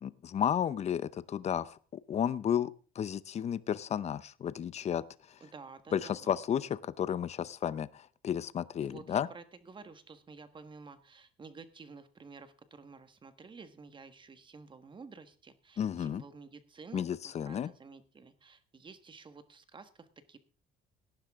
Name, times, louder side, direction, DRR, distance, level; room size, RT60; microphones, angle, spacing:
voice 1, 0.0-5.0 5.9-9.3 15.8-16.2 16.9-17.7, left 9 dB, 40° left, 17 dB, 0.7 m, -33 dB
voice 2, 5.4-6.3 8.8-20.4, right 4 dB, 30° right, 11 dB, 1.4 m, -51 dB
18.0 x 10.5 x 3.6 m, 0.39 s
cardioid pair, 110°, 17 cm